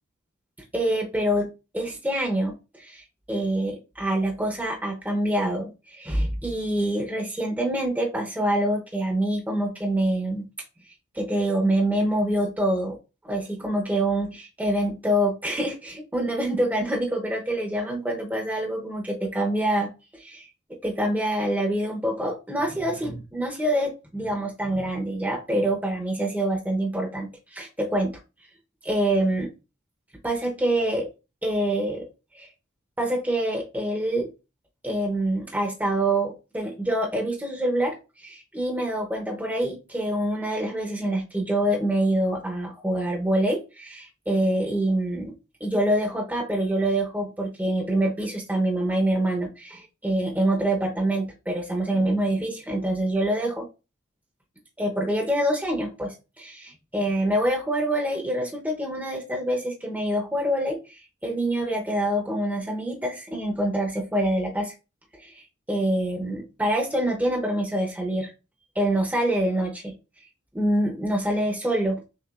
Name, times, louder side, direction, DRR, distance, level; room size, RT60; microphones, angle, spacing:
voice 1, 0.7-1.5 1.7-10.5 11.1-13.0 13.2-20.5 20.8-28.2 28.8-29.5 30.2-31.1 31.4-32.1 32.3-32.5 33.0-34.3 34.8-45.3 45.6-53.7 54.8-64.7 65.2-68.3 68.8-70.0 70.5-72.0, right 1 dB, 10° right, 1 dB, 0.7 m, -26 dB
6.0 x 3.2 x 2.3 m, 0.30 s
head